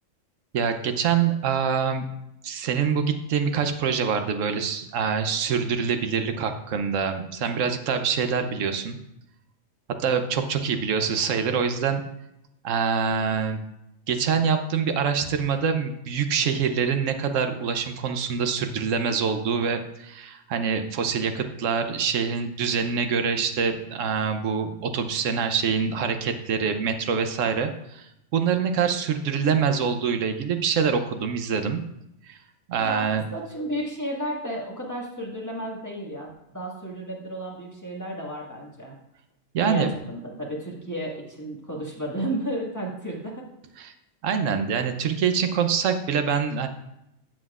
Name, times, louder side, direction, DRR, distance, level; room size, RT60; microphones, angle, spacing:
voice 1, 0.5-2.0 2.4-9.0 10.0-12.0 12.6-13.6 14.1-28.1 28.3-31.8 32.3-32.4 32.7-33.3 39.5-39.9 43.8-43.9 44.2-46.7, right 6 dB, 75° right, 7 dB, 1.1 m, -25 dB
voice 2, 32.8-39.0 39.6-43.5, right 1 dB, 15° left, -3 dB, 1.7 m, -33 dB
13.5 x 7.5 x 2.4 m, 0.83 s
omnidirectional pair, 1.3 m